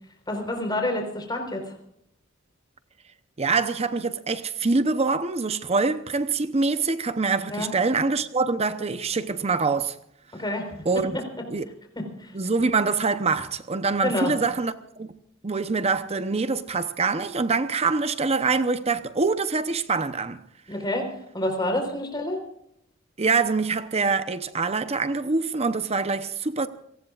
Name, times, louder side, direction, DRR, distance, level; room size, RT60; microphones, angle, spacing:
voice 1, 0.3-1.7 7.5-7.7 10.3-11.2 12.0-12.3 14.0-14.3 20.7-22.4, left 1 dB, 20° left, 4.2 m, -28 dB
voice 2, 3.4-10.0 10.8-11.1 11.5-11.7 12.3-15.1 15.4-20.4 23.2-26.7, right 4 dB, 35° right, 0.8 m, -25 dB
29.5 x 18.5 x 2.5 m
head